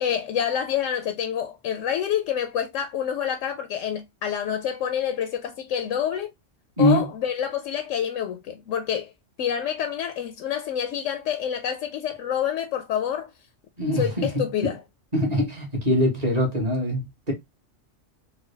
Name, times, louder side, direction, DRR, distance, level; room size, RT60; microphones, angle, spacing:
voice 1, 0.0-6.3 6.8-9.1 9.4-13.3 14.0-14.8, left 9 dB, 85° left, 0.9 m, -27 dB
voice 2, 13.8-14.7 15.1-17.3, left 1 dB, 35° right, 1.3 m, -23 dB
3.8 x 2.2 x 3.2 m
omnidirectional pair, 1.3 m